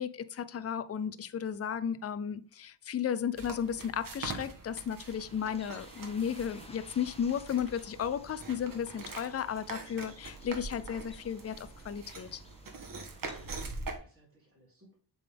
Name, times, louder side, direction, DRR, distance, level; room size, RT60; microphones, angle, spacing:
voice 1, 0.0-12.4, left 8 dB, 35° left, 0.5 m, -34 dB
sound 1, 3.3-14.0, right 3 dB, 50° right, 1.3 m, -44 dB
Bird, 5.1-13.6, left 2 dB, 15° left, 1.0 m, -56 dB
voice 2, 13.0-15.0, right 1 dB, 30° right, 3.0 m, -64 dB
7.4 x 3.8 x 3.4 m
wide cardioid pair, 115°, 42 cm